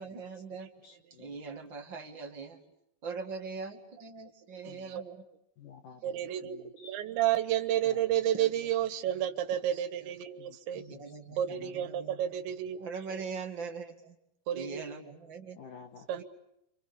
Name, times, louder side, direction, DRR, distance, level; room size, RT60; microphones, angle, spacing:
voice 1, 0.0-0.7 1.2-2.6 3.0-5.2 8.1-8.5 9.7-10.1 10.7-12.2 12.8-14.2 14.5-15.6, right 5 dB, 40° right, 3 dB, 1.9 m, -42 dB
voice 2, 0.8-1.4 4.6-5.0 5.6-7.0 7.8-8.0 10.4-10.6 10.9-11.9 15.6-16.2, left 6 dB, 65° left, 6 dB, 2.2 m, -53 dB
voice 3, 4.6-5.0 6.0-10.9 11.4-13.2 14.5-14.8 16.1-16.2, right 11 dB, 90° right, 10 dB, 3.7 m, -31 dB
29.5 x 26.5 x 7.0 m, 0.79 s
omnidirectional pair, 5.0 m